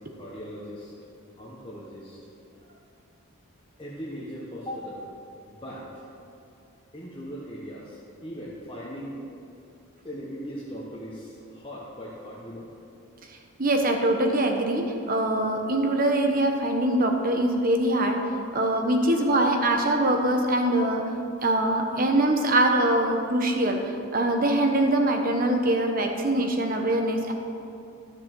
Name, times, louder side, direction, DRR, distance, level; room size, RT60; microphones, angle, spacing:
voice 1, 0.1-0.9 1.4-2.2 3.8-5.0 5.4-6.0 6.9-9.2 10.0-12.7, equal, 25° left, -7 dB, 1.3 m, -39 dB
voice 2, 13.6-18.2 18.5-21.0 21.4-23.8 24.1-27.3, right 1 dB, 40° right, 3 dB, 1.0 m, -23 dB
13.0 x 6.8 x 6.1 m, 2.6 s
head